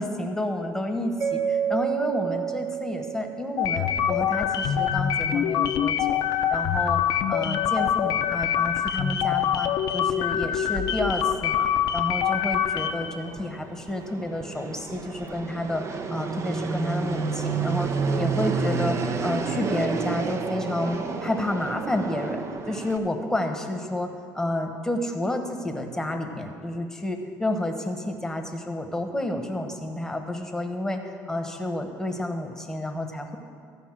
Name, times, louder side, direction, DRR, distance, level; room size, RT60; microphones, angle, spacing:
voice 1, 0.0-6.2 6.5-7.0 7.3-15.8 16.1-17.9 18.2-19.0 19.2-33.4, left 1 dB, 5° left, 4 dB, 1.2 m, -30 dB
Mallet percussion, 1.2-4.2, right 8 dB, 65° right, 1.4 m, -29 dB
sound 1, 3.6-13.1, left 9 dB, 65° left, 0.6 m, -25 dB
Fixed-wing aircraft airplane, 12.8-23.0, right 5 dB, 40° right, 0.8 m, -30 dB
14.0 x 5.4 x 7.5 m, 2.3 s
supercardioid pair, 100°, 7 cm